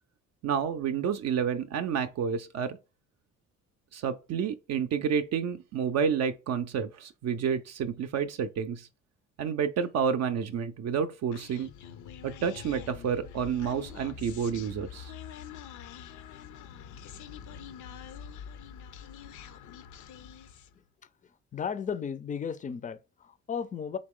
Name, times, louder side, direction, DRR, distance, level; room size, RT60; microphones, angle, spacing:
voice 1, 0.4-2.8 3.9-8.9 9.4-11.7 12.2-15.1, right 7 dB, 60° right, 0.4 m, -30 dB
Human voice, 11.3-20.8, left 8 dB, 80° left, 0.5 m, -45 dB
voice 2, 21.5-24.0, left 7 dB, 25° left, 0.4 m, -34 dB
3.9 x 3.0 x 3.6 m
cardioid pair, 90°, 30 cm